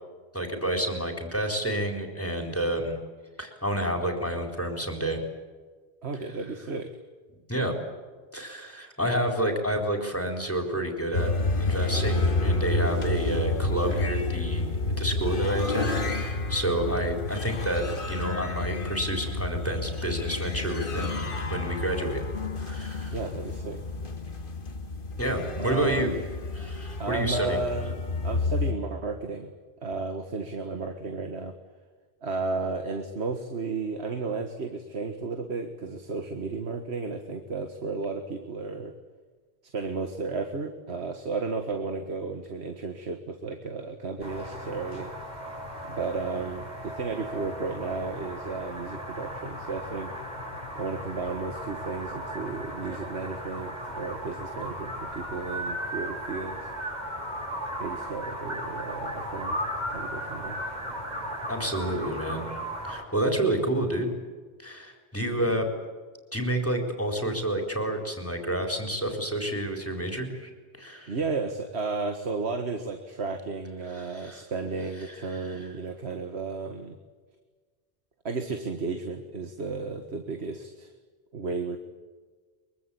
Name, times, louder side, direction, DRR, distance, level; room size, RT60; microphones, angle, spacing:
voice 1, 0.3-3.0 3.4-5.2 7.5-7.8 8.3-11.3 11.6-21.2 21.5-22.2 22.6-23.2 25.2-26.1 26.5-27.6 61.5-62.5 62.8-64.1 64.6-65.7 66.3-70.5 70.8-71.1 73.9-74.4 75.1-75.7, right 1 dB, 15° left, 3 dB, 4.1 m, -29 dB
voice 2, 6.0-6.9 13.3-13.5 16.8-17.1 23.1-23.8 25.6-26.2 27.0-28.0 28.2-29.5 29.8-31.5 32.2-38.9 39.7-45.1 45.8-50.1 50.7-56.7 57.8-59.6 59.9-60.6 65.5-65.6 71.1-76.9 78.2-80.9 81.3-81.8, right 4 dB, 85° right, 7 dB, 1.9 m, -33 dB
sound 1, 11.1-28.7, left 2 dB, 55° left, 2.1 m, -30 dB
sound 2, 44.2-63.0, equal, 40° right, 5.8 m, -36 dB
24.0 x 23.5 x 8.6 m, 1.5 s
omnidirectional pair, 1.1 m